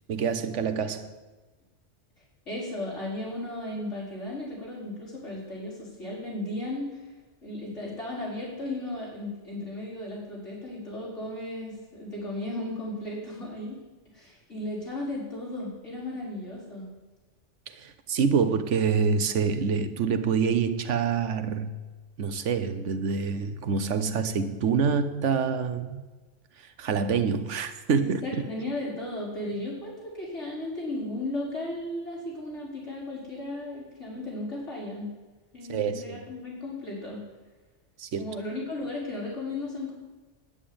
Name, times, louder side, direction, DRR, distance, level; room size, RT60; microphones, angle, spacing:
voice 1, 0.1-1.1 17.7-21.7 22.2-26.0 26.6-28.4 35.7-36.2 38.0-38.3, right 6 dB, 80° right, 10 dB, 1.2 m, -26 dB
voice 2, 2.5-7.1 7.4-13.8 14.1-16.9 28.0-35.1 35.5-37.2 38.2-39.9, left 1 dB, 80° left, -6 dB, 5.0 m, -35 dB
10.0 x 9.5 x 8.7 m, 1.2 s
omnidirectional pair, 1.2 m